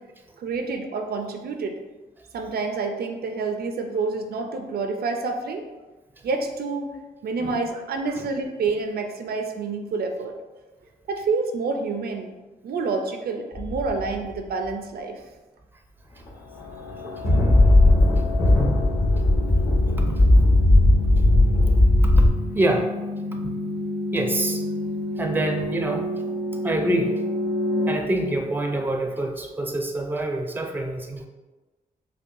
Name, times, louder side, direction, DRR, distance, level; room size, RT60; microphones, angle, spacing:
voice 1, 0.4-1.8 2.3-5.7 6.2-6.9 7.2-10.3 11.1-12.3 12.6-15.2, right 4 dB, 75° right, 4 dB, 0.4 m, -28 dB
sound 1, 13.5-14.1 16.3-16.4 16.9-22.3, left 1 dB, 45° left, 1.4 m, -17 dB
sound 2, 16.5-29.2, left 1 dB, 80° left, 0.5 m, -31 dB
voice 2, 17.3-17.7 20.1-20.3 22.0-22.3 22.5-22.9 23.4-23.5 24.1-24.6 25.2-26.1 26.6-27.2 27.9-31.3, right 1 dB, 10° right, 3 dB, 0.5 m, -26 dB
5.3 x 2.2 x 2.6 m, 1.2 s
cardioid pair, 80°, 16 cm